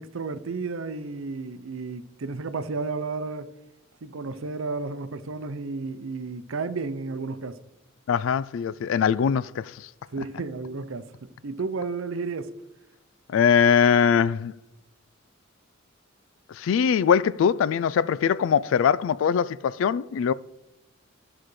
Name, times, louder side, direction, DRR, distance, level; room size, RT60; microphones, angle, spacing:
voice 1, 0.0-3.5 4.0-7.6 10.1-12.5, right 4 dB, 80° right, 0.6 m, -32 dB
voice 2, 8.1-9.9 13.3-14.5 16.5-20.3, left 7 dB, 70° left, 0.3 m, -22 dB
13.5 x 5.8 x 3.2 m
head